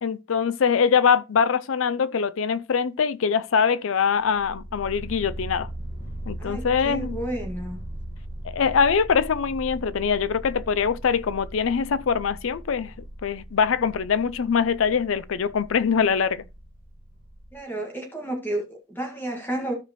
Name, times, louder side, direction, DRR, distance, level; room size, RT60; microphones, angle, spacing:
voice 1, 0.0-5.7 6.3-7.2 8.4-12.9 13.2-16.4, left 6 dB, 75° left, 0.5 m, -23 dB
sound 1, 4.1-17.6, right 1 dB, 55° left, 1.6 m, -39 dB
voice 2, 6.4-7.8 17.5-19.7, right 1 dB, 10° left, 1.9 m, -31 dB
13.5 x 4.9 x 3.0 m
head